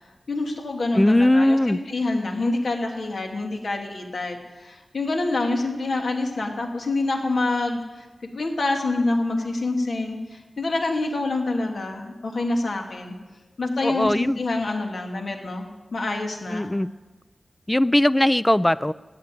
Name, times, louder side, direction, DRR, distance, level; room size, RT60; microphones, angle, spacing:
voice 1, 0.3-8.1 8.3-13.1 13.6-16.7, left 2 dB, 75° left, 2 dB, 2.4 m, -26 dB
voice 2, 0.9-1.8 13.8-14.4 16.5-16.9 17.7-18.9, left 1 dB, 15° left, 17 dB, 0.4 m, -19 dB
14.5 x 10.0 x 9.0 m, 1.2 s
wide cardioid pair, 85°, 0 cm